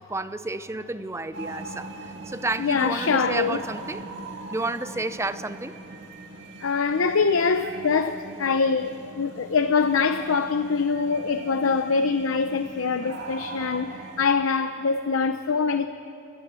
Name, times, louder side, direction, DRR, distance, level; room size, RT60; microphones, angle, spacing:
voice 1, 0.0-4.0 4.5-5.7, right 2 dB, 15° right, 12 dB, 0.6 m, -31 dB
sound 1, 1.3-14.2, right 3 dB, 60° right, 2.1 m, -40 dB
voice 2, 2.6-3.6 6.6-15.9, left 5 dB, 90° left, 9 dB, 0.7 m, -24 dB
30.0 x 15.5 x 7.6 m, 3.0 s
head